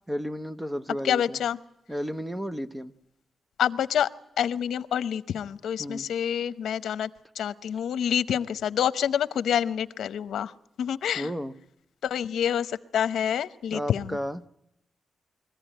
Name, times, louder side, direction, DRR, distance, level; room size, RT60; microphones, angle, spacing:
voice 1, 0.1-1.4 1.9-2.9 5.8-6.1 11.2-11.5 13.7-14.5, equal, 10° right, 12 dB, 0.7 m, -33 dB
voice 2, 1.0-1.6 3.6-4.1 4.4-7.1 7.4-10.5 10.8-11.3 12.0-14.2, left 9 dB, 90° left, 14 dB, 0.7 m, -27 dB
22.5 x 15.0 x 10.0 m, 0.81 s
wide cardioid pair, 125°, 0 cm